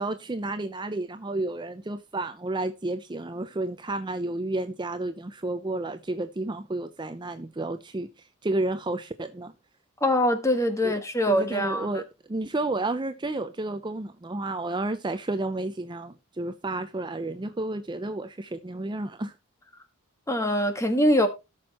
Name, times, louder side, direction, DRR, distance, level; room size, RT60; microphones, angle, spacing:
voice 1, 0.0-8.1 8.4-9.5 10.8-11.0 11.3-19.3, right 2 dB, 20° right, 0.5 m, -31 dB
voice 2, 10.0-12.0 20.3-21.3, equal, 15° left, 1.5 m, -23 dB
17.5 x 6.2 x 2.9 m
head